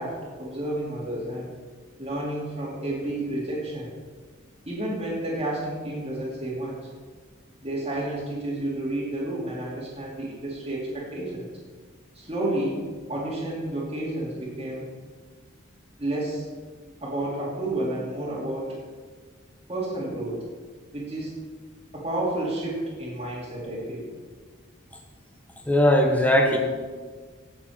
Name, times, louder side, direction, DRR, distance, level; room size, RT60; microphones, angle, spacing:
voice 1, 0.0-1.5 2.0-3.9 4.7-6.8 7.6-11.5 12.1-12.8 13.1-14.9 16.0-16.5 17.0-18.7 19.7-20.4 20.9-21.4 21.9-24.1, right 1 dB, 30° right, -7 dB, 2.7 m, -30 dB
voice 2, 25.7-26.6, left 1 dB, 5° left, 2 dB, 1.3 m, -19 dB
17.0 x 7.4 x 4.6 m, 1.5 s
head